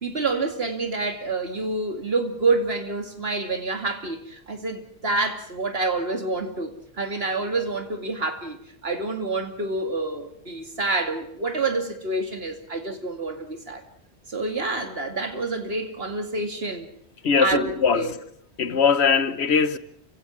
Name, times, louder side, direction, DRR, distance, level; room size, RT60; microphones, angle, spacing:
voice 1, 0.0-13.8 14.3-16.9 17.4-18.1, right 3 dB, 70° right, 2.7 m, -27 dB
voice 2, 17.2-18.2 18.6-19.8, left 6 dB, 85° left, 1.4 m, -21 dB
29.0 x 16.5 x 7.4 m
omnidirectional pair, 1.1 m